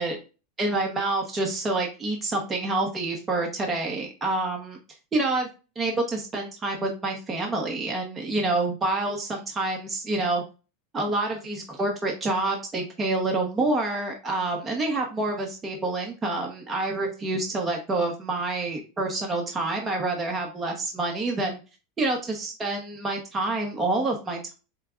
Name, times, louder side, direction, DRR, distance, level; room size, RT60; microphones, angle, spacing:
voice 1, 0.6-4.8 5.1-5.5 5.8-10.4 10.9-21.6 22.0-24.5, right 2 dB, 20° right, 1 dB, 1.0 m, -27 dB
6.5 x 2.2 x 2.4 m, 0.31 s
supercardioid pair, 120°, 0 cm